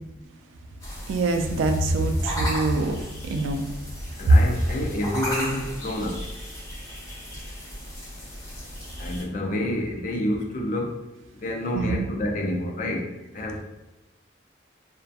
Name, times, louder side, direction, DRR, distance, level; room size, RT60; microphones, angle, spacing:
sound 1, 0.8-9.2, equal, 15° left, 0.8 m, -35 dB
voice 1, 1.1-3.0 3.3-3.6 4.3-4.4 11.7-12.1, right 2 dB, 90° right, 6 dB, 0.3 m, -22 dB
voice 2, 4.2-6.2 9.0-10.9 11.4-13.0 13.3-13.6, left 1 dB, 40° left, 1 dB, 0.4 m, -28 dB
2.3 x 2.2 x 2.6 m, 1.0 s
head